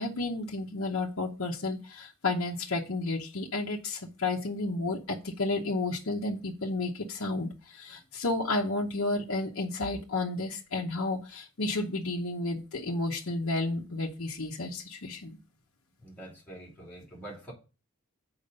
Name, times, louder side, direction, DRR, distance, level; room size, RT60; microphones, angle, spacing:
voice 1, 0.0-15.4, left 2 dB, 60° left, 0.8 m, -32 dB
voice 2, 16.0-17.5, right 1 dB, 10° left, 2.8 m, -45 dB
6.9 x 4.8 x 5.2 m
head